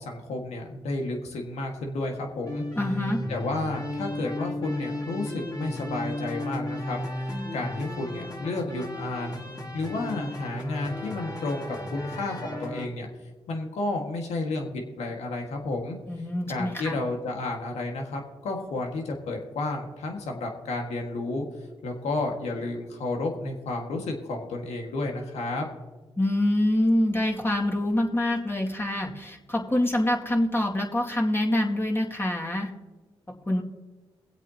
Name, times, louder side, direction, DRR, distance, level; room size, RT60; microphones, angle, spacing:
voice 1, 0.0-2.6 3.3-7.0 7.5-9.4 9.7-13.1 13.5-16.0 16.5-21.5 21.8-25.7, left 2 dB, 85° left, 2 dB, 1.7 m, -31 dB
sound 1, 2.4-12.9, left 1 dB, 35° left, 2.8 m, -34 dB
voice 2, 2.8-3.2 16.0-17.0 26.2-32.7 33.5-33.6, left 1 dB, 20° left, -1 dB, 2.2 m, -25 dB
22.5 x 8.1 x 2.9 m, 1.2 s
supercardioid pair, 45°, 11 cm